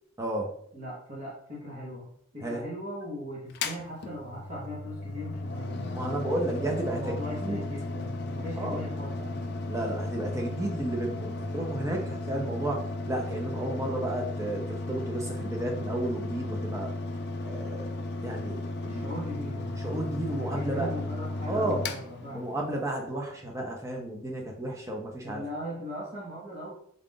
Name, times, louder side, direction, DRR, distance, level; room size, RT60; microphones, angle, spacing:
voice 1, 0.2-0.5 2.4-2.6 5.9-7.6 8.6-8.8 9.7-16.9 17.4-17.9 18.2-19.1 19.8-20.9 21.4-21.9 22.3-25.4, right 1 dB, 15° right, 0 dB, 0.5 m, -32 dB
voice 2, 0.7-2.1 2.3-6.3 6.9-9.4 18.8-19.8 20.4-22.5 25.2-26.7, equal, 35° right, -7 dB, 0.9 m, -39 dB
Mechanical fan, 3.5-22.9, left 2 dB, 50° left, 0.4 m, -35 dB
3.8 x 2.4 x 3.6 m, 0.66 s
head